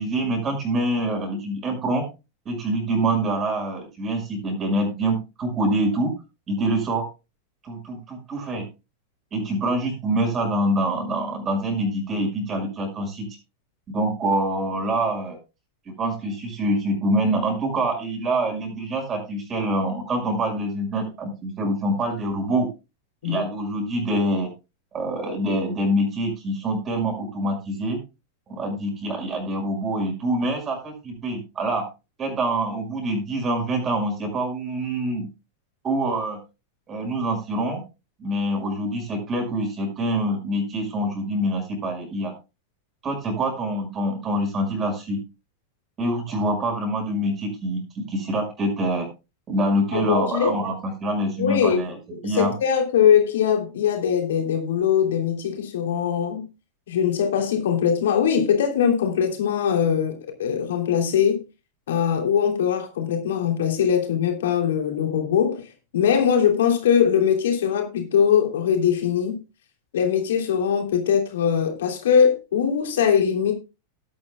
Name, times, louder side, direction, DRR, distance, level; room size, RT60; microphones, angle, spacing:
voice 1, 0.0-2.1 2.4-6.1 6.5-7.1 7.6-8.6 9.3-13.3 13.9-15.4 15.9-22.7 23.2-24.5 24.9-28.0 28.5-31.9 32.2-35.3 35.8-36.4 36.9-37.8 38.2-42.3 43.0-45.2 46.0-49.1 49.5-52.5, right 1 dB, 25° right, 5.8 m, -25 dB
voice 2, 49.9-50.6 51.4-51.8 52.2-56.4 56.9-61.4 61.9-65.6 65.9-69.4 69.9-73.5, left 8 dB, 60° left, 3.1 m, -21 dB
18.5 x 8.7 x 2.3 m
figure-of-eight pair, 90°, 0 cm